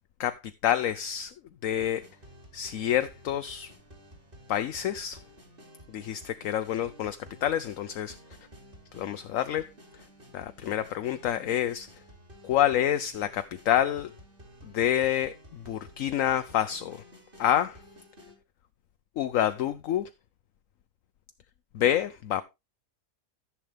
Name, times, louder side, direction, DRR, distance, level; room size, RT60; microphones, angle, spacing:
voice 1, 0.2-1.3 1.6-2.0 2.5-3.7 4.5-5.2 5.9-8.2 8.9-9.7 10.3-11.9 12.4-14.1 14.6-17.0 17.4-17.8 19.2-20.1 21.7-22.4, left 11 dB, 65° left, 1.0 m, -28 dB
sound 1, 1.7-18.4, equal, 35° right, 3.0 m, -53 dB
14.0 x 7.2 x 3.4 m
omnidirectional pair, 1.7 m